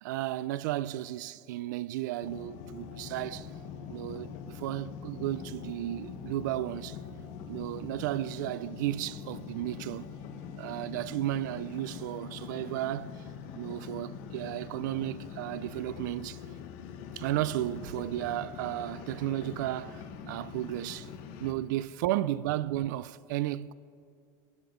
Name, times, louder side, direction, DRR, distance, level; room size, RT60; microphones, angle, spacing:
voice 1, 0.0-3.5 3.9-7.0 7.5-10.1 10.6-13.1 13.6-16.4 17.2-21.1 21.4-23.7, right 14 dB, 80° right, 0.4 m, -34 dB
sound 1, 2.2-21.5, left 7 dB, 50° left, 1.1 m, -43 dB
21.0 x 8.1 x 5.1 m
cardioid pair, 175°, 10 cm